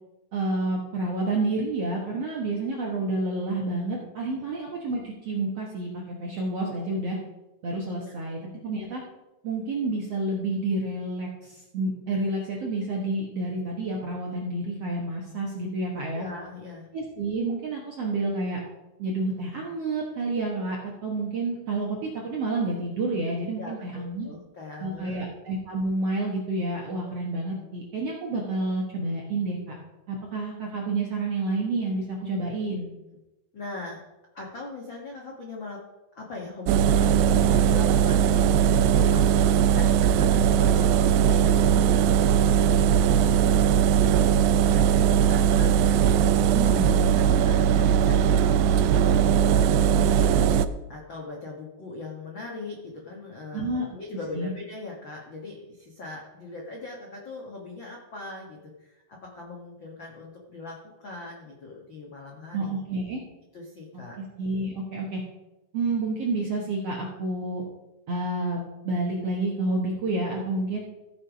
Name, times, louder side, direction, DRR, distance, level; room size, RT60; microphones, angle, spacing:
voice 1, 0.3-7.2 7.6-9.0 9.4-16.3 16.9-18.6 19.0-24.3 24.8-29.8 30.1-32.9 46.5-47.3 53.5-53.9 54.3-54.5 62.5-63.2 64.2-65.2 65.7-67.6 68.1-70.8, right 2 dB, 60° right, -2 dB, 1.6 m, -29 dB
voice 2, 16.1-16.9 23.6-25.3 33.1-33.2 33.5-34.0 34.3-35.8 36.1-44.1 44.6-48.6 48.9-50.3 50.9-62.8 63.5-64.2, left 3 dB, 70° left, -2 dB, 1.1 m, -40 dB
Engine, 36.7-50.7, right 9 dB, 85° right, 2.6 m, -20 dB
15.5 x 5.6 x 5.1 m, 1.0 s
omnidirectional pair, 4.7 m